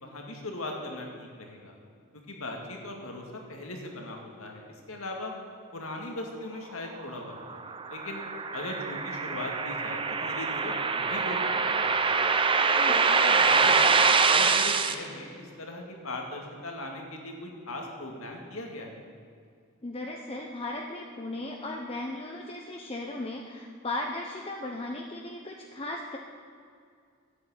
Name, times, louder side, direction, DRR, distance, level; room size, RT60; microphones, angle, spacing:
voice 1, 0.0-1.7 2.3-5.3 5.7-7.6 7.9-8.2 8.5-12.3 12.9-19.0, left 1 dB, 75° left, 1 dB, 2.3 m, -39 dB
sound 1, 7.1-14.9, right 5 dB, 25° right, 0.6 m, -24 dB
voice 2, 12.6-13.0 19.8-26.2, left 2 dB, 25° left, 1 dB, 0.9 m, -36 dB
11.5 x 8.9 x 8.6 m, 2.2 s
head